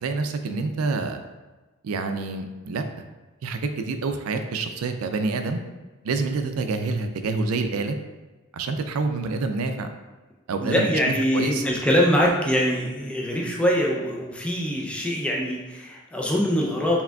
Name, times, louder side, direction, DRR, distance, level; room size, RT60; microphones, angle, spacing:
voice 1, 0.0-1.2 1.8-2.8 3.4-5.6 6.0-8.0 8.5-9.9 10.5-10.9 11.3-11.6, right 3 dB, 85° right, 7 dB, 0.4 m, -27 dB
voice 2, 10.6-17.0, equal, 5° left, -3 dB, 0.4 m, -23 dB
4.7 x 3.5 x 2.3 m, 1.2 s
head